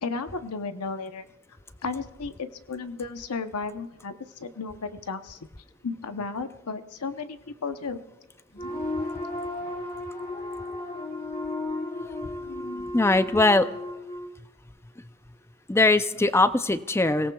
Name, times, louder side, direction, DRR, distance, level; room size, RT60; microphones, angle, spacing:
voice 1, 0.0-1.3 1.8-5.4 5.8-8.0, left 4 dB, 90° left, 9 dB, 0.8 m, -34 dB
sound 1, 8.5-12.9, left 2 dB, 45° left, 4.0 m, -36 dB
Wind instrument woodwind instrument, 8.6-14.3, left 1 dB, 25° left, 2.6 m, -36 dB
voice 2, 12.9-13.7 15.7-17.3, left 2 dB, 10° left, 12 dB, 0.5 m, -21 dB
30.0 x 17.5 x 2.3 m, 1.0 s
head